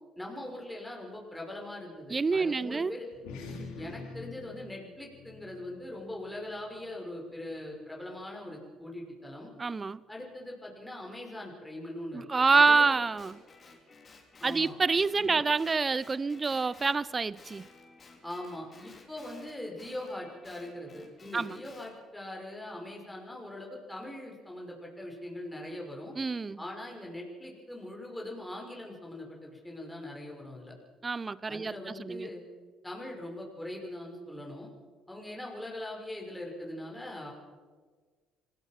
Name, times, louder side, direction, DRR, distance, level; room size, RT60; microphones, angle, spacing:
voice 1, 0.2-3.1 3.8-9.5 10.1-13.0 14.4-14.8 15.2-15.4 18.2-26.1 26.6-30.7 31.5-32.4 32.8-34.7 35.1-37.3, left 1 dB, 10° left, 5.9 m, -41 dB
voice 2, 2.1-2.9 9.6-10.0 12.1-13.4 14.4-17.6 21.3-21.6 26.2-26.6 31.0-32.3, right 4 dB, 30° right, 0.7 m, -27 dB
sound 1, 3.1-7.9, left 4 dB, 75° left, 4.3 m, -47 dB
Guitar, 12.5-17.0 17.3-21.9, left 3 dB, 40° left, 5.1 m, -55 dB
26.0 x 16.5 x 6.1 m
hypercardioid pair, 55°, 0 cm